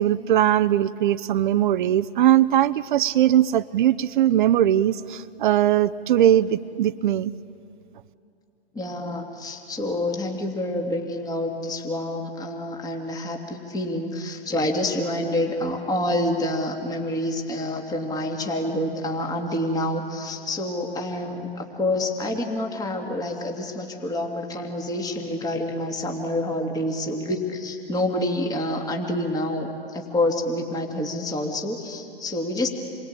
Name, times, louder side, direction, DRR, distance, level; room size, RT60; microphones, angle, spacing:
voice 1, 0.0-7.3, right 11 dB, 55° right, 13 dB, 0.7 m, -20 dB
voice 2, 8.7-32.7, left 1 dB, 10° left, 2 dB, 2.5 m, -27 dB
28.0 x 22.5 x 9.0 m, 2.5 s
hypercardioid pair, 120°, 31 cm